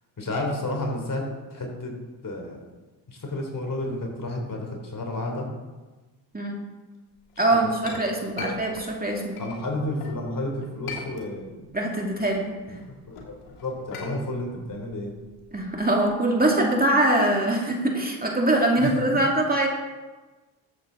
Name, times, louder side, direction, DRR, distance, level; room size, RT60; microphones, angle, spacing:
voice 1, 0.2-1.9 2.2-2.6 3.1-5.5 7.8-8.0 8.4-8.5 9.4-11.7 12.7-12.8 13.0-15.1 18.8-18.9, left 1 dB, 40° left, 1 dB, 3.3 m, -31 dB
Chink clink, 7.3-10.2 10.6-11.7 12.0-16.1, left 3 dB, 85° left, 2.4 m, -41 dB
voice 2, 7.4-9.4 11.7-12.5 15.5-19.7, right 1 dB, 20° right, -1 dB, 2.3 m, -23 dB
13.5 x 8.1 x 3.9 m, 1.2 s
supercardioid pair, 60°, 50 cm